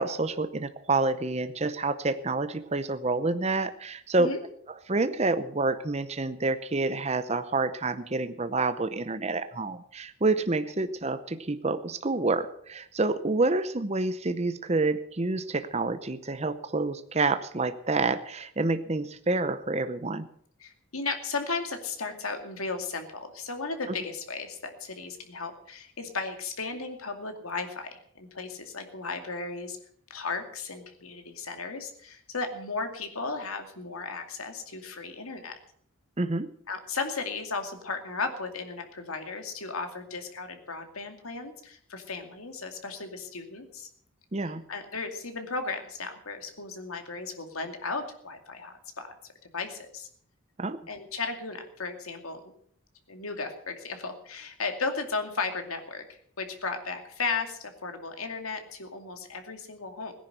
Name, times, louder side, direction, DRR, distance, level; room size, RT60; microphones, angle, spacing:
voice 1, 0.0-4.3 4.9-20.3 36.2-36.5 44.3-44.6 50.6-50.8, right 3 dB, 30° right, 10 dB, 0.7 m, -28 dB
voice 2, 20.6-29.8 30.1-35.6 36.7-43.9 44.7-49.2 49.5-50.1 50.9-52.4 53.1-56.0 56.4-60.1, left 4 dB, 90° left, 6 dB, 2.4 m, -35 dB
17.5 x 10.5 x 6.7 m, 0.63 s
head